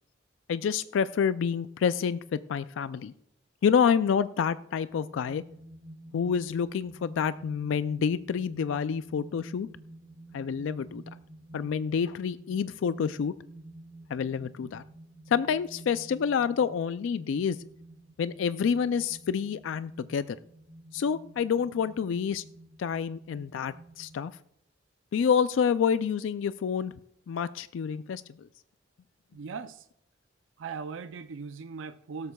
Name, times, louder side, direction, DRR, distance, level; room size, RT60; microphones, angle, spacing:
voice 1, 0.5-3.1 3.6-5.4 6.1-9.7 10.3-11.0 11.5-13.3 14.1-14.8 15.3-17.6 18.2-20.4 20.9-22.4 22.8-24.3 25.1-26.9 27.3-28.5, left 7 dB, 80° left, 14 dB, 0.3 m, -28 dB
sound 1, 4.9-24.3, right 1 dB, 45° right, 2.4 m, -50 dB
voice 2, 29.3-29.9 30.6-32.3, right 5 dB, 80° right, 10 dB, 0.4 m, -39 dB
17.0 x 13.0 x 2.3 m, 0.75 s
head